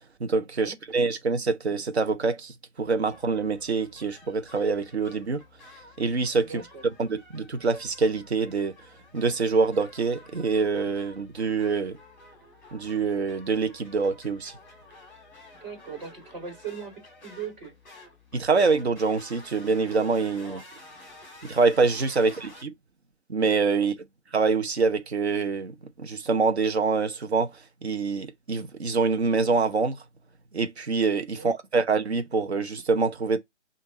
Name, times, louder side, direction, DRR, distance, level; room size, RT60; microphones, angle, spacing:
voice 1, 0.2-5.4 6.0-6.6 7.0-8.7 9.1-12.0 12.7-14.5 18.3-20.6 21.4-22.7 23.3-23.9 24.3-30.0 30.5-33.4, right 4 dB, 65° right, 0.9 m, -25 dB
sound 1, 2.8-22.6, left 2 dB, 5° left, 1.6 m, -51 dB
voice 2, 6.4-6.8 15.6-17.7 20.4-20.6 22.2-22.3 23.8-23.9 31.3-31.5, right 6 dB, 35° right, 2.5 m, -39 dB
5.1 x 2.7 x 3.6 m
figure-of-eight pair, 145°, 35 cm